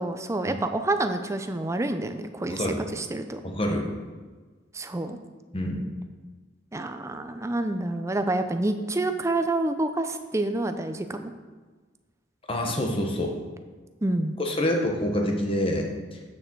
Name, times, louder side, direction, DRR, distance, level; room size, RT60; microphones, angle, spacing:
voice 1, 0.0-2.6 2.9-3.4 4.7-5.2 6.7-11.3 14.0-14.4, right 2 dB, 15° right, 8 dB, 0.5 m, -28 dB
voice 2, 2.5-2.8 3.4-3.9 5.5-5.8 12.5-13.3 14.4-15.9, left 1 dB, 30° left, 2 dB, 1.2 m, -26 dB
8.6 x 6.7 x 4.6 m, 1.4 s
head